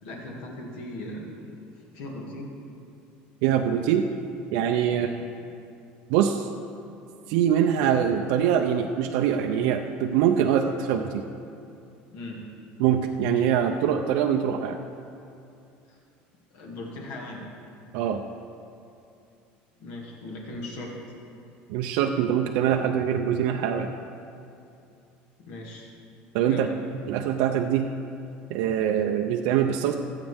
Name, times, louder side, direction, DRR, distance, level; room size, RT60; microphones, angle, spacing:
voice 1, 0.0-1.5 1.9-2.5 4.9-5.2 12.1-12.5 16.5-17.4 19.8-21.0 25.4-25.9 26.5-26.8, left 1 dB, 65° left, -2 dB, 2.3 m, -38 dB
voice 2, 3.4-4.1 4.5-5.1 6.1-6.5 7.3-11.2 12.8-14.8 17.9-18.2 21.7-23.9 26.3-26.7 26.9-27.9 28.5-29.9, right 9 dB, 65° right, 4 dB, 0.5 m, -23 dB
18.0 x 8.2 x 3.5 m, 2.6 s
cardioid pair, 180°, 4 cm